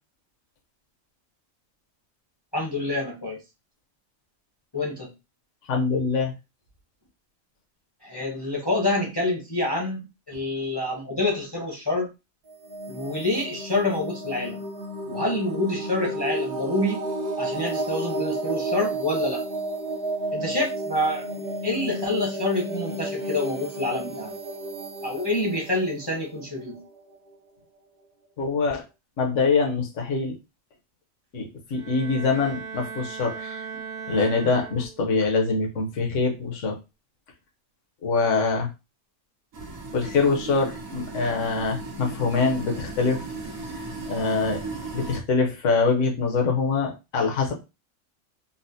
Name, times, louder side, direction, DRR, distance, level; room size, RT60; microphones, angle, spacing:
voice 1, 2.5-3.4 4.7-5.1 8.0-12.1 12.9-14.6 15.0-17.1 17.4-19.4 20.3-24.3 25.0-26.8, left 2 dB, 25° left, -1 dB, 0.6 m, -27 dB
voice 2, 5.7-6.3 28.4-28.8 29.2-30.3 31.3-33.7 34.1-36.7 38.0-38.7 39.9-43.2 44.1-44.6 44.9-47.5, left 4 dB, 65° left, 1 dB, 1.2 m, -24 dB
sound 1, 12.5-27.2, right 1 dB, 55° right, 0.8 m, -32 dB
Bowed string instrument, 31.7-35.2, right 6 dB, 70° right, 0.4 m, -38 dB
sound 2, 39.5-45.2, right 3 dB, 90° right, 1.3 m, -36 dB
4.1 x 2.0 x 2.6 m, 0.26 s
omnidirectional pair, 1.4 m